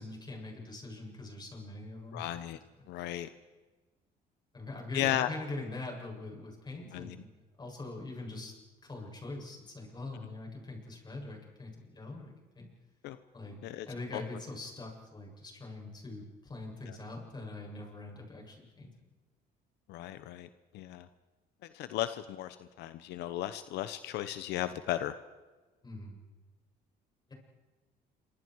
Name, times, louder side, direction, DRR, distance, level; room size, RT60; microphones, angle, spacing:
voice 1, 0.0-2.4 4.5-7.3 7.6-8.5 8.9-12.7 13.3-13.5 13.8-18.9 25.8-26.1, left 2 dB, 25° left, 0 dB, 7.6 m, -43 dB
voice 2, 2.1-2.6 2.9-3.3 4.9-5.3 6.9-7.2 13.0-13.2 13.6-13.9 14.1-14.2 16.9-17.0 19.9-20.5 20.7-21.1 21.7-25.1, left 13 dB, 85° left, 12 dB, 1.0 m, -35 dB
27.5 x 25.5 x 4.8 m, 1.2 s
cardioid pair, 110°, 17 cm